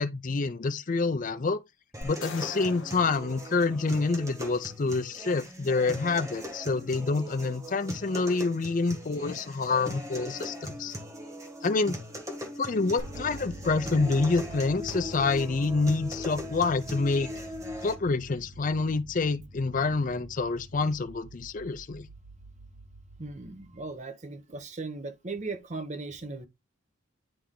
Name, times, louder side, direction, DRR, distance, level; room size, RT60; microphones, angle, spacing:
voice 1, 0.0-1.6 2.0-10.9 11.6-12.0 12.6-17.3 17.8-22.1, left 3 dB, 40° left, 0.5 m, -27 dB
sound 1, 1.9-17.9, left 1 dB, 15° right, 1.2 m, -40 dB
sound 2, 2.0-4.4, left 4 dB, 65° left, 0.9 m, -45 dB
sound 3, 13.0-24.0, right 1 dB, 70° right, 1.9 m, -46 dB
voice 2, 23.2-26.5, right 3 dB, 35° right, 1.0 m, -38 dB
10.0 x 3.4 x 3.7 m
head